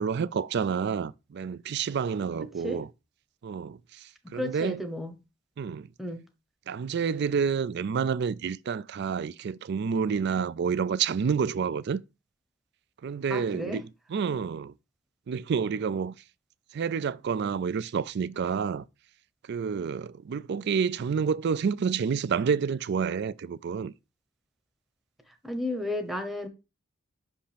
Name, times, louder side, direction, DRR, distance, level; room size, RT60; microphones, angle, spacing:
voice 1, 0.0-2.9 3.4-4.8 5.6-5.9 6.7-12.0 13.0-14.7 15.3-16.1 16.7-18.9 19.5-23.9, right 6 dB, 55° right, 0.4 m, -29 dB
voice 2, 4.2-5.2 6.0-6.3 13.3-13.8 25.3-26.5, left 1 dB, ahead, 0.9 m, -33 dB
5.7 x 5.4 x 5.0 m
head